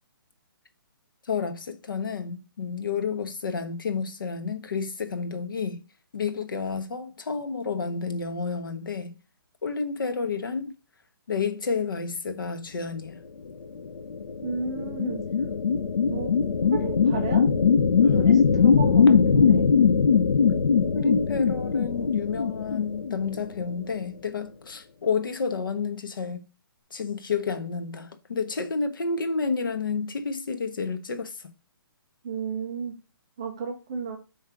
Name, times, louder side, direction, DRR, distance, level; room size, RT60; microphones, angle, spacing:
voice 1, 1.3-5.8 6.1-9.2 9.6-10.7 11.3-13.2 18.0-18.3 20.9-26.4 26.9-31.5, left 5 dB, 60° left, 1.1 m, -30 dB
sound 1, 13.9-23.6, left 6 dB, 85° left, 0.8 m, -21 dB
voice 2, 14.4-15.2 16.0-16.3 16.7-17.4 18.1-18.4 18.6-19.7 32.2-32.9 33.4-34.2, right 5 dB, 15° right, 0.4 m, -32 dB
7.6 x 3.3 x 4.6 m
hypercardioid pair, 180°, 12 cm